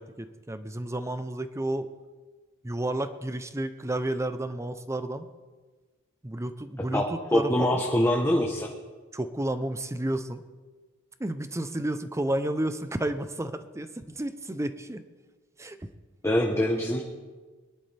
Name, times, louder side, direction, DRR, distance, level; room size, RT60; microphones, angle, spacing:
voice 1, 0.0-1.9 2.6-5.3 6.2-7.8 9.1-10.4 11.2-15.0 15.6-15.8, right 1 dB, 15° right, 10 dB, 0.7 m, -31 dB
voice 2, 6.9-8.7 16.2-17.0, left 1 dB, 10° left, 0 dB, 1.1 m, -24 dB
23.0 x 11.0 x 3.4 m, 1.3 s
head